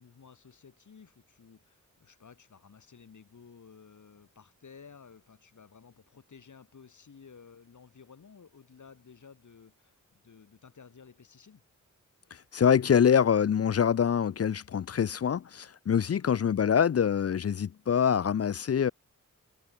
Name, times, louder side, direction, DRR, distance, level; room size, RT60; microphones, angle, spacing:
voice 1, 0.0-11.6 16.1-16.3, left 6 dB, 70° left, 3.7 m, -54 dB
voice 2, 12.5-18.9, left 8 dB, 50° left, 0.5 m, -25 dB
cardioid pair, 65°, 31 cm